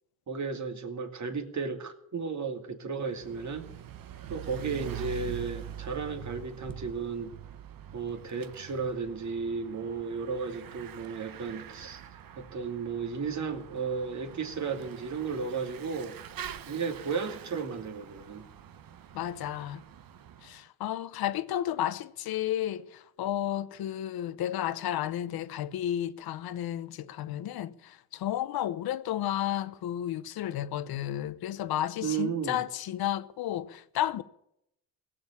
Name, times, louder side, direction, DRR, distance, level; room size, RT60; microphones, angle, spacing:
voice 1, 0.3-3.7 4.3-7.3 7.9-12.0 12.4-16.2 16.7-18.5 32.0-32.6, right 5 dB, 50° right, 2.6 m, -34 dB
Bicycle / Mechanisms, 3.0-20.6, right 10 dB, 70° right, 1.1 m, -45 dB
voice 2, 19.1-19.8 20.4-34.2, left 12 dB, 90° left, 1.0 m, -32 dB
17.0 x 7.9 x 9.8 m
cardioid pair, 80°, 36 cm